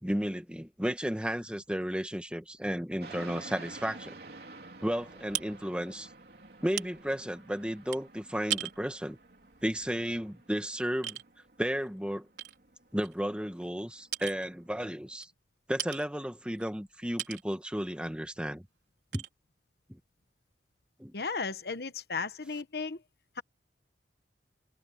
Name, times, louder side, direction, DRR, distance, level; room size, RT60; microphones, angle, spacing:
voice 1, 0.0-4.2 4.8-6.1 6.6-9.2 9.6-11.2 11.6-12.3 12.9-15.3 15.7-18.6 19.1-19.2 19.9-20.0 21.0-21.1, equal, 5° right, 1.4 m, -33 dB
sound 1, 3.0-15.1, right 2 dB, 60° right, 3.7 m, -51 dB
sound 2, 4.9-10.7 11.0-11.2 11.8-11.9 12.4-13.8 14.1-14.5 15.2-15.3 15.8-16.1 16.5-17.6 18.0-18.2 18.5-18.6 19.1-19.3, right 10 dB, 80° right, 4.2 m, -40 dB
voice 2, 21.1-23.0 23.4-23.5, left 4 dB, 60° left, 1.1 m, -35 dB
open air
head